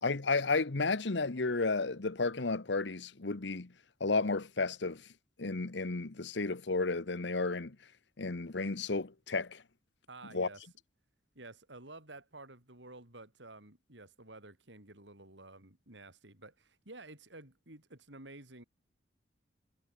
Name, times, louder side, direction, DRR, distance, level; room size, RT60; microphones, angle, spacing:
voice 1, 0.0-3.7 4.0-5.0 5.4-7.8 8.2-9.6 10.3-10.5, left 3 dB, 70° left, 1.1 m, -32 dB
voice 2, 10.1-10.6 11.4-18.6, right 2 dB, 75° right, 5.6 m, -52 dB
head